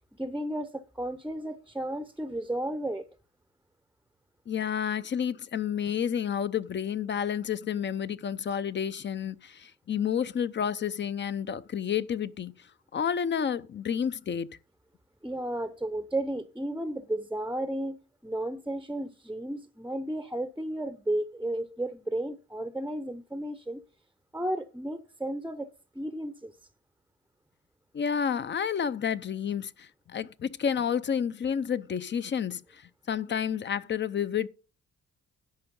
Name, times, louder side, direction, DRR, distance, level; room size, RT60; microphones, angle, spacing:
voice 1, 0.2-3.1 15.2-18.0 18.2-23.8 24.3-25.7 25.9-26.5, right 1 dB, 5° right, 0.7 m, -33 dB
voice 2, 4.5-12.5 12.9-14.5 27.9-32.8 33.1-34.5, left 8 dB, 40° left, 0.6 m, -30 dB
10.5 x 6.2 x 5.3 m
cardioid pair, 90°, 30 cm